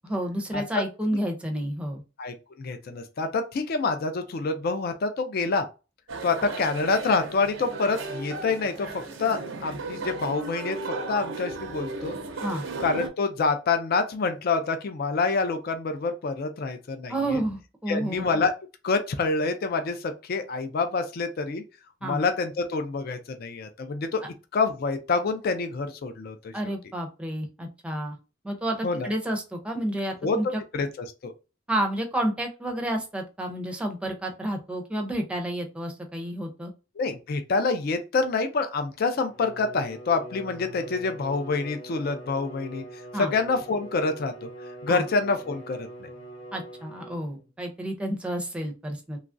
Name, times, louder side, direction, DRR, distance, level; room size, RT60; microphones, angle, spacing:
voice 1, 0.0-2.0 12.4-12.6 17.1-18.3 22.0-22.2 26.5-28.2 28.4-30.6 31.7-36.7 43.1-43.3 44.9-45.0 46.5-49.2, right 1 dB, 5° right, 0.5 m, -30 dB
voice 2, 2.2-5.7 6.2-8.9 9.2-12.2 12.8-17.1 17.9-18.5 18.8-21.6 22.0-24.2 24.5-26.5 28.8-29.1 30.2-30.4 30.7-31.3 37.0-42.8 43.1-44.5 44.8-46.1, left 4 dB, 50° left, 0.4 m, -27 dB
sound 1, 6.1-13.1, right 3 dB, 90° right, 0.6 m, -35 dB
Bowed string instrument, 39.2-47.5, right 1 dB, 80° left, 0.7 m, -43 dB
3.0 x 2.3 x 2.5 m
head